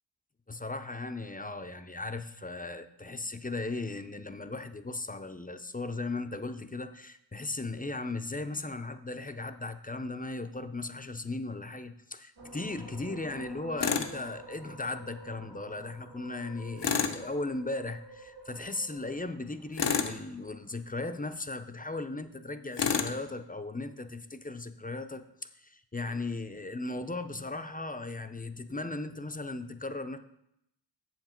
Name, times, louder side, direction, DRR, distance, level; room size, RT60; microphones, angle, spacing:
voice 1, 0.5-30.2, left 2 dB, 20° left, 9 dB, 0.6 m, -37 dB
sound 1, 12.4-20.8, right 1 dB, 60° right, 1.9 m, -50 dB
Tools, 13.8-14.1 16.8-17.2 19.8-20.2 22.8-23.2, left 6 dB, 70° left, 0.9 m, -28 dB
8.3 x 7.3 x 4.4 m, 0.79 s
wide cardioid pair, 65°, 45 cm